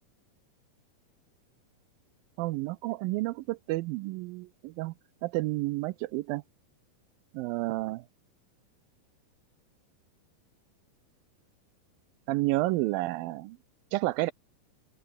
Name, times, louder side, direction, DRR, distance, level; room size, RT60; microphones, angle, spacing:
voice 1, 2.4-4.9 5.2-6.4 7.3-8.0 12.3-13.6 13.9-14.3, right 19 dB, 80° right, 2.1 m, -30 dB
open air
omnidirectional pair, 4.5 m